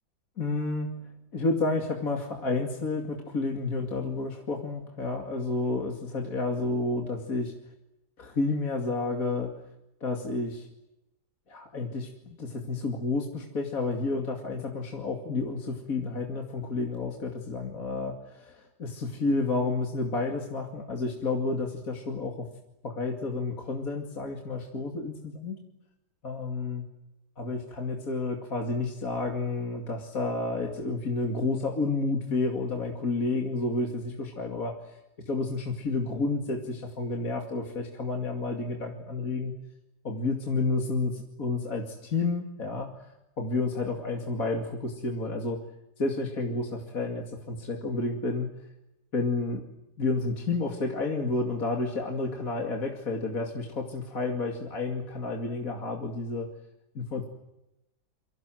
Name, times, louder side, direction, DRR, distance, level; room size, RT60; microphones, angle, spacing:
voice 1, 0.4-1.0 1.3-7.5 8.2-9.5 10.0-10.7 11.5-22.5 22.8-25.6 26.2-26.8 27.4-35.0 35.3-39.5 40.0-43.1 43.4-45.6 46.0-48.5 49.1-49.6 50.0-56.5 56.9-57.3, left 3 dB, 50° left, 2 dB, 2.9 m, -30 dB
28.0 x 25.5 x 7.7 m, 0.92 s
omnidirectional pair, 2.0 m